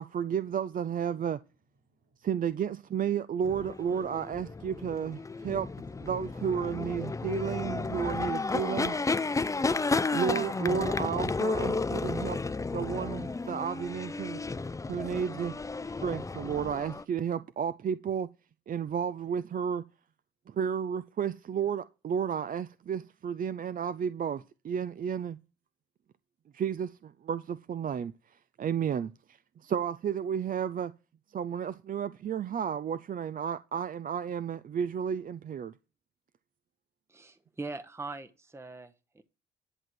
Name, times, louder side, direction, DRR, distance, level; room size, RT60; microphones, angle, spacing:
voice 1, 0.0-1.4 2.2-5.7 6.0-8.9 10.1-12.4 12.7-14.4 14.9-15.5 15.8-18.3 18.7-19.8 20.5-25.4 26.5-28.1 28.6-29.1 29.6-30.9 31.3-35.7, right 8 dB, 45° right, 0.5 m, -32 dB
voice 2, 1.1-2.3, right 5 dB, 75° right, 6.5 m, -64 dB
sound 1, 3.4-17.0, left 3 dB, 15° left, 0.5 m, -32 dB
voice 3, 37.1-39.2, right 3 dB, 15° right, 0.9 m, -41 dB
11.0 x 4.5 x 7.7 m
cardioid pair, 90°, 20 cm